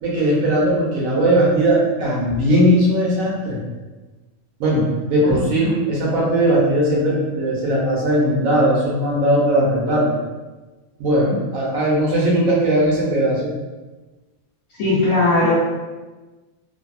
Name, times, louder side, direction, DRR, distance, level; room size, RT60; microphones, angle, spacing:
voice 1, 0.0-3.6 4.6-10.2 11.0-13.5, right 1 dB, 90° right, -4 dB, 1.2 m, -18 dB
voice 2, 5.2-5.6 14.8-15.5, left 2 dB, 85° left, -10 dB, 1.1 m, -18 dB
3.2 x 2.0 x 2.5 m, 1.2 s
omnidirectional pair, 1.4 m